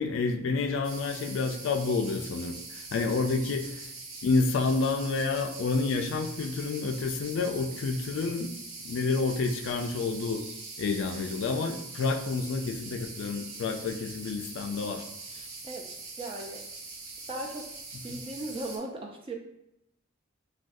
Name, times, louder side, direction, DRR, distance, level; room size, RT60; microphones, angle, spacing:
voice 1, 0.0-2.6 2.9-3.9 4.2-8.5 8.8-10.4 10.8-15.0 15.4-15.5 18.1-18.2, left 4 dB, 60° left, 6 dB, 0.3 m, -29 dB
sound 1, 0.8-18.8, right 3 dB, 75° right, 0.6 m, -43 dB
voice 2, 16.2-16.6 17.3-17.7 18.0-19.4, right 2 dB, 25° right, 1 dB, 0.4 m, -37 dB
2.5 x 2.3 x 3.4 m, 0.80 s
head